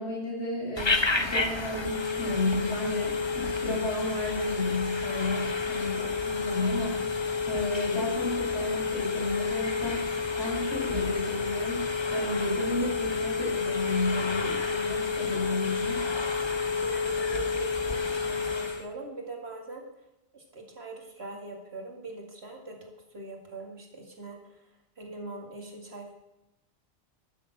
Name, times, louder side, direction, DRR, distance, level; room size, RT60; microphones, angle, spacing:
voice 1, 0.0-10.1 10.4-16.0, left 1 dB, 70° left, -5 dB, 6.4 m, -32 dB
Telephone, 0.8-18.9, left 4 dB, 25° left, 0.9 m, -30 dB
voice 2, 16.8-19.8 20.3-24.6 25.0-26.1, right 3 dB, 65° right, 1 dB, 2.5 m, -42 dB
12.0 x 7.6 x 7.8 m, 0.92 s
omnidirectional pair, 1.2 m